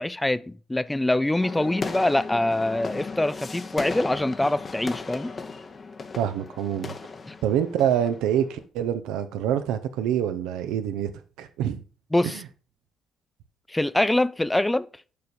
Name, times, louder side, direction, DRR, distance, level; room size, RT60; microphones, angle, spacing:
voice 1, 0.0-5.3 7.3-7.4 12.1-12.4 13.7-14.9, left 1 dB, 15° left, 0.4 m, -24 dB
sound 1, 1.4-8.6, left 4 dB, 40° left, 0.9 m, -36 dB
voice 2, 6.1-6.9 7.4-11.1 11.4-11.8 12.2-12.4, right 10 dB, 80° right, 0.6 m, -26 dB
6.6 x 5.2 x 4.2 m
hypercardioid pair, 50°, 0 cm